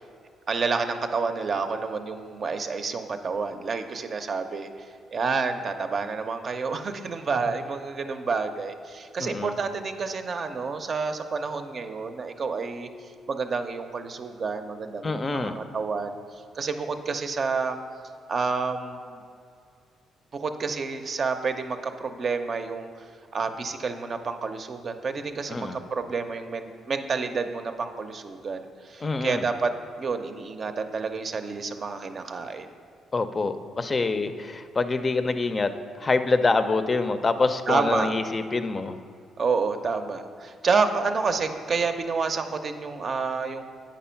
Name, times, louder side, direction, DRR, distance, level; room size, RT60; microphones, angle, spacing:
voice 1, 0.5-4.7 5.1-12.9 13.3-16.2 16.5-17.8 18.3-19.2 20.3-22.9 23.3-32.7 37.7-38.1 39.4-43.6, right 4 dB, 45° right, 7 dB, 0.6 m, -29 dB
voice 2, 9.2-9.6 15.0-15.6 25.5-25.8 29.0-29.4 33.1-35.7 36.0-39.0, left 3 dB, 30° left, 10 dB, 0.5 m, -26 dB
8.6 x 5.2 x 5.7 m, 2.3 s
cardioid pair, 90°, 0 cm